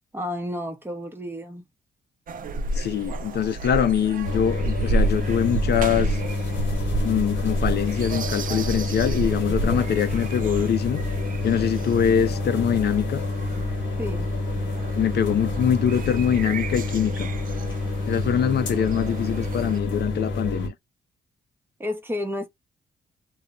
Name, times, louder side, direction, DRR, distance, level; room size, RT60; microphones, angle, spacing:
voice 1, 0.1-1.6 14.0-14.3 21.8-22.5, left 1 dB, 10° right, 0.7 m, -31 dB
sound 1, 2.3-19.8, right 2 dB, 50° right, 0.4 m, -31 dB
voice 2, 2.7-6.2 7.0-11.0 11.4-13.2 14.9-17.3 18.1-20.7, left 8 dB, 65° left, 0.5 m, -23 dB
sound 2, 4.2-20.7, left 2 dB, 90° left, 0.9 m, -28 dB
2.2 x 2.0 x 3.7 m
cardioid pair, 80°, 19 cm